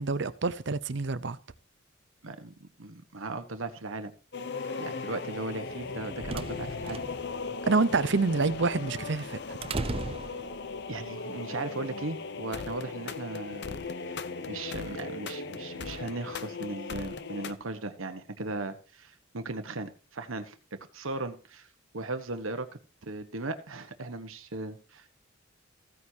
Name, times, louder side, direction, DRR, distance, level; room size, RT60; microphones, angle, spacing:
voice 1, 0.0-1.4 7.6-9.4, right 3 dB, 60° right, 0.7 m, -27 dB
voice 2, 2.2-4.1 4.7-7.0 10.9-13.8 14.1-14.2 14.5-20.6 20.9-21.7 21.9-22.7 23.0-25.2, right 2 dB, 80° right, 1.2 m, -37 dB
sound 1, 4.3-17.5, left 4 dB, 55° left, 0.8 m, -38 dB
sound 2, 5.9-11.0, right 3 dB, 30° right, 0.4 m, -38 dB
15.5 x 9.6 x 2.8 m
head